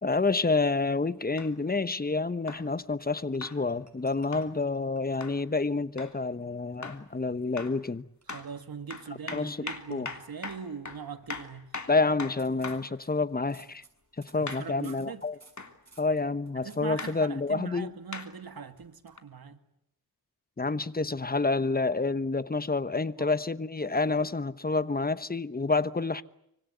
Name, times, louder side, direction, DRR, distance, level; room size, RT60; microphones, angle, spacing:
voice 1, 0.0-8.0 9.3-9.6 9.9-10.1 11.9-13.8 14.3-15.4 16.0-17.9 20.6-26.2, left 3 dB, 25° left, 1.1 m, -28 dB
sound 1, 1.4-1.5 2.5-2.7 3.4-3.6 4.3-4.5 5.2-5.4 6.0-6.2 6.8-7.1 7.6-7.8 8.3-8.5 8.9-12.9 14.5-14.7 15.6-15.8 17.0-17.2 18.1-18.3 19.2-19.3, left 4 dB, 50° left, 3.2 m, -40 dB
sound 2, 3.0-5.3 5.6-5.8 6.4-7.9 8.2-8.4 9.0-9.4 9.9-10.0 10.3-10.6 11.2-11.6 12.2-17.1 18.4-19.2, right 4 dB, 45° right, 6.1 m, -60 dB
voice 2, 8.3-11.7 14.4-15.2 16.6-19.6 23.2-23.3, right 6 dB, 75° right, 2.3 m, -41 dB
25.5 x 25.0 x 8.1 m
wide cardioid pair, 85°, 37 cm